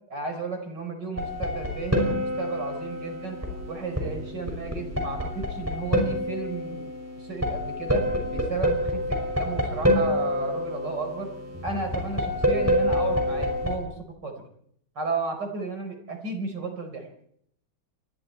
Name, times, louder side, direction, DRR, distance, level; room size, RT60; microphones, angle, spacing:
voice 1, 0.1-3.4 3.7-6.9 7.2-8.0 8.3-11.3 11.6-14.4 15.0-17.1, right 3 dB, 55° right, 5 dB, 5.1 m, -33 dB
sound 1, 1.2-13.8, equal, 5° right, 5.8 m, -27 dB
29.0 x 22.0 x 4.5 m, 0.68 s
omnidirectional pair, 2.2 m